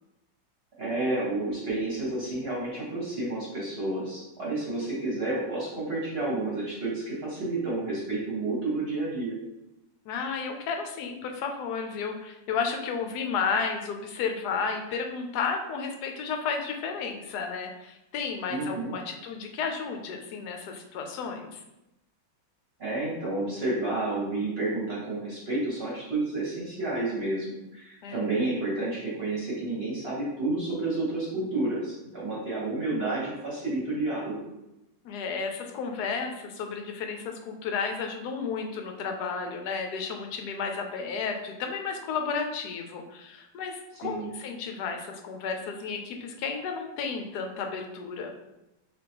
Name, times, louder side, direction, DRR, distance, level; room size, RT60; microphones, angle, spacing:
voice 1, 0.8-9.3 18.5-19.0 22.8-34.3 44.0-44.3, right 2 dB, 40° right, -6 dB, 1.1 m, -30 dB
voice 2, 10.1-21.6 28.0-28.5 35.0-48.3, left 5 dB, 70° left, 4 dB, 1.0 m, -32 dB
3.8 x 3.4 x 2.9 m, 0.92 s
omnidirectional pair, 2.0 m